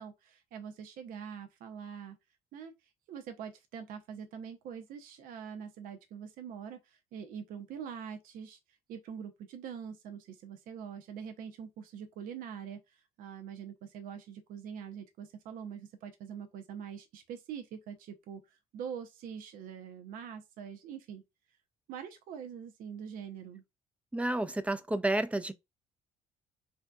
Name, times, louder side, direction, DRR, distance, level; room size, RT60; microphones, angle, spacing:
voice 1, 0.0-2.2 2.5-2.7 3.1-8.6 8.9-21.2 21.9-23.6, right 7 dB, 75° right, 0.6 m, -44 dB
voice 2, 24.1-25.5, right 1 dB, 10° right, 0.4 m, -30 dB
3.3 x 2.7 x 2.3 m
supercardioid pair, 80°, 15 cm